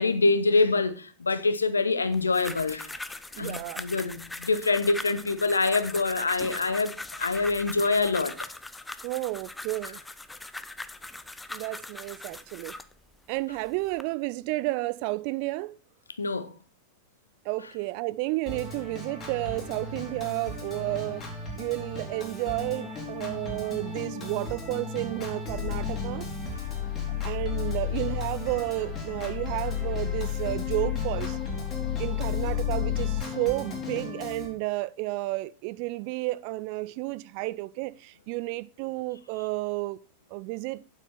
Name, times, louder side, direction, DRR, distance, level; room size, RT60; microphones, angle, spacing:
voice 1, 0.0-2.9 3.4-8.4 16.2-16.5, left 3 dB, 75° left, 0.9 m, -25 dB
sound 1, 2.1-12.9 13.6-14.0, left 2 dB, 5° left, 0.6 m, -40 dB
voice 2, 3.3-3.9 9.0-10.0 11.5-12.8 13.3-15.8 17.4-21.3 21.6-26.3 27.2-31.4 32.0-40.0 40.3-40.8, right 20 dB, 45° right, 0.4 m, -31 dB
Organ, 18.5-34.5, left 2 dB, 25° left, 3.7 m, -37 dB
sound 2, 25.5-33.2, left 13 dB, 45° left, 0.6 m, -32 dB
9.0 x 7.7 x 4.3 m
figure-of-eight pair, 90°, 0 cm